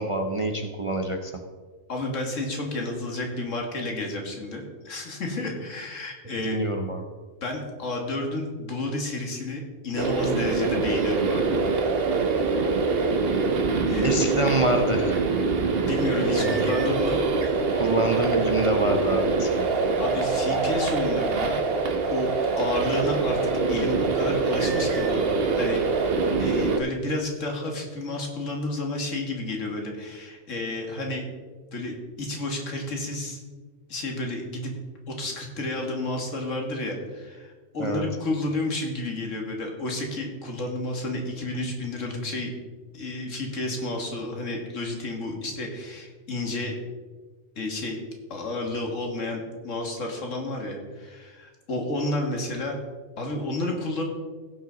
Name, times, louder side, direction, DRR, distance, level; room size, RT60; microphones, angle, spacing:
voice 1, 0.0-1.3 6.4-7.0 14.0-15.2 16.3-16.6 17.7-19.7 37.8-38.0, right 1 dB, 35° right, 4 dB, 0.6 m, -26 dB
voice 2, 1.9-6.6 7.4-11.5 13.9-14.2 15.8-17.6 20.0-21.6 22.1-22.3 22.6-25.8 26.4-31.2 31.7-33.4 33.9-34.7 35.1-42.5 42.9-46.7 47.6-48.0 48.3-52.8 53.2-54.0, left 2 dB, 70° left, 2 dB, 2.0 m, -31 dB
sound 1, 10.0-26.8, right 4 dB, 50° right, 1.0 m, -24 dB
16.5 x 5.9 x 3.9 m, 1.4 s
omnidirectional pair, 1.3 m